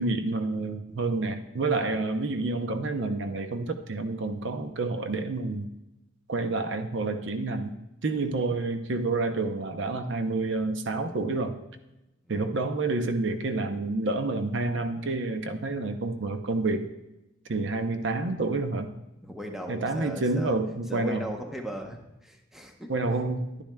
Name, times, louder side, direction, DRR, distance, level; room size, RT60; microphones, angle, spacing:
voice 1, 0.0-5.7 6.3-7.7 8.0-11.6 12.3-16.9 17.5-18.9 19.7-21.2 22.9-23.6, right 3 dB, 60° right, 7 dB, 0.6 m, -29 dB
voice 2, 19.2-20.5 20.9-22.9, equal, ahead, 2 dB, 0.7 m, -38 dB
11.5 x 10.5 x 2.2 m, 0.94 s
head